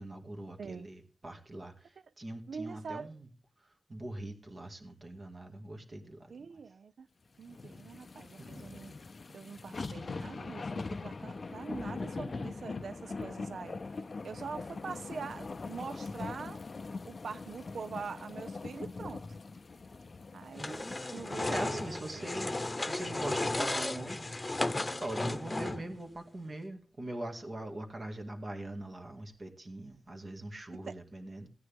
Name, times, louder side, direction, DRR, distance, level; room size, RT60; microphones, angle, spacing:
voice 1, 0.0-3.3 3.9-6.5 7.6-7.7 8.4-8.6 21.5-24.4 24.9-31.5, right 1 dB, 45° right, 2.0 m, -42 dB
voice 2, 2.5-3.1 6.3-7.1 7.4-8.9 9.3-16.6 17.0-19.2 20.3-22.3 30.7-31.0, right 5 dB, 80° right, 0.4 m, -44 dB
sound 1, 7.4-21.9 22.3-22.4, left 3 dB, 50° left, 0.5 m, -42 dB
sound 2, 20.6-26.0, left 2 dB, 25° left, 0.9 m, -34 dB
15.5 x 9.4 x 3.5 m
cardioid pair, 65°, 0 cm